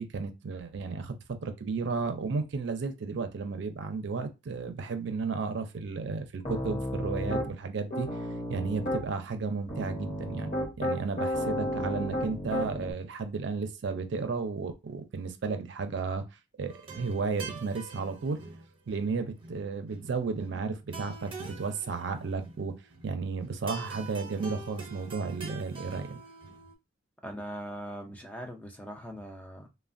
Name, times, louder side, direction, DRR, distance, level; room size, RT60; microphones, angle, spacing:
voice 1, 0.0-8.1 8.5-10.5 10.8-16.2 16.6-18.4 18.9-26.2, right 4 dB, 65° right, 0.4 m, -33 dB
Piano, 6.4-7.5 7.9-9.0 9.7-12.9, equal, 40° left, 0.8 m, -32 dB
sound 1, 16.7-26.7, right 4 dB, 30° right, 0.6 m, -45 dB
voice 2, 27.2-29.7, equal, 10° left, 0.4 m, -41 dB
3.1 x 2.1 x 2.5 m
head